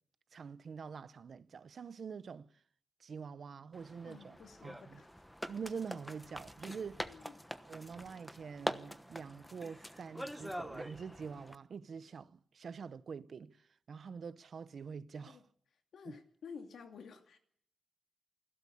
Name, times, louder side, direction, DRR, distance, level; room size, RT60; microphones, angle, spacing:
voice 1, 0.3-2.5 3.0-4.4 4.6-5.0 5.5-7.1 7.7-15.4 16.1-16.2, right 6 dB, 60° right, 0.8 m, -46 dB
sound 1, 3.7-11.5, equal, ahead, 1.1 m, -44 dB
voice 2, 4.0-5.2 7.1-7.3 15.3-15.4 15.7-17.4, left 5 dB, 85° left, 2.6 m, -52 dB
28.0 x 12.5 x 8.6 m
wide cardioid pair, 130°, 0 cm